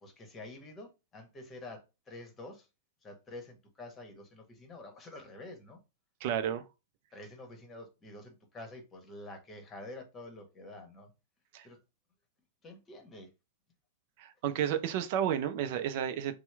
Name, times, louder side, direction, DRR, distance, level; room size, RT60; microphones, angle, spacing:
voice 1, 0.0-2.7 3.0-5.8 7.1-11.1 11.6-11.8 12.6-13.3, left 2 dB, 20° left, 1.1 m, -48 dB
voice 2, 6.2-6.6 11.5-11.7 14.2-16.4, right 10 dB, 50° right, 0.4 m, -31 dB
2.9 x 2.1 x 3.3 m
figure-of-eight pair, 100°, 0 cm